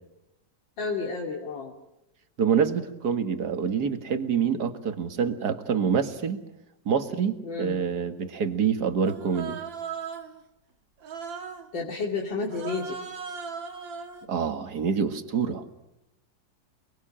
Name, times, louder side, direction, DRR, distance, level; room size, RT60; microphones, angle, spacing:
voice 1, 0.8-1.7 7.4-7.8 11.7-13.0, left 4 dB, 75° left, 0 dB, 3.2 m, -31 dB
voice 2, 2.4-6.4 6.9-9.6 14.3-15.6, right 7 dB, 55° right, 9 dB, 2.3 m, -26 dB
Human voice, 9.0-10.4 11.0-11.7 12.5-14.3, right 6 dB, 75° right, 2.5 m, -37 dB
29.5 x 21.5 x 8.8 m, 0.89 s
omnidirectional pair, 2.1 m